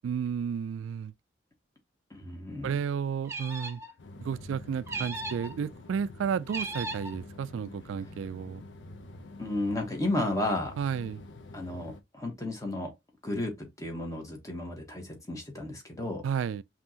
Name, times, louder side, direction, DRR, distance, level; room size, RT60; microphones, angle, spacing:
voice 1, 0.0-1.1 2.6-3.8 4.2-8.6 10.8-11.2 16.2-16.6, right 7 dB, 85° right, 0.3 m, -32 dB
voice 2, 2.1-2.7 9.4-10.7 11.5-12.9 13.2-16.2, left 1 dB, 15° left, 1.1 m, -33 dB
sound 1, 3.2-3.9 4.9-5.5 6.5-7.2, right 3 dB, 15° right, 0.7 m, -36 dB
sound 2, 4.0-12.0, left 2 dB, 70° left, 0.7 m, -47 dB
5.5 x 2.9 x 2.7 m
head